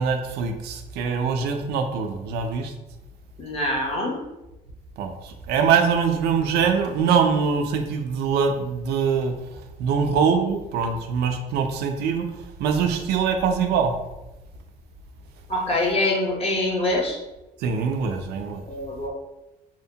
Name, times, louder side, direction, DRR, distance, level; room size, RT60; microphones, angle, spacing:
voice 1, 0.0-2.7 5.0-9.3 9.8-12.3 12.6-13.9 17.6-18.6, right 6 dB, 75° right, 5 dB, 0.4 m, -23 dB
voice 2, 3.4-4.2 15.5-17.2 18.7-19.1, left 1 dB, 35° left, -2 dB, 0.7 m, -24 dB
2.8 x 2.1 x 2.7 m, 0.98 s
cardioid pair, 110°, 17 cm